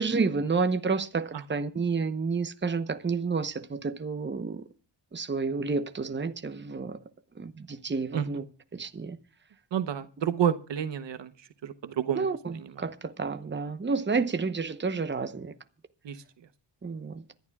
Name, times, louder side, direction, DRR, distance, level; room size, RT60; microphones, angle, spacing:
voice 1, 0.0-4.6 5.1-7.0 7.4-8.4 8.7-9.2 12.2-12.4 12.8-15.5 16.8-17.2, right 4 dB, 25° right, 0.9 m, -30 dB
voice 2, 9.7-12.9 16.0-16.2, right 9 dB, 80° right, 1.0 m, -31 dB
25.5 x 11.5 x 2.4 m
cardioid pair, 75°, 43 cm